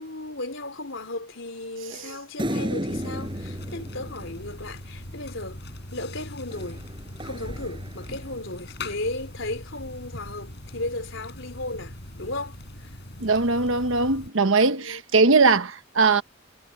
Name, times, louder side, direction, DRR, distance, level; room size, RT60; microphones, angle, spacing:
voice 1, 0.0-6.8 7.2-13.0 14.8-15.0, left 2 dB, 70° left, 3.6 m, -35 dB
sound 1, 2.4-5.1 6.5-8.6, equal, 25° right, 5.0 m, -34 dB
sound 2, 2.9-14.3, left 1 dB, 55° left, 6.4 m, -40 dB
voice 2, 13.2-16.2, right 4 dB, 75° right, 1.2 m, -20 dB
head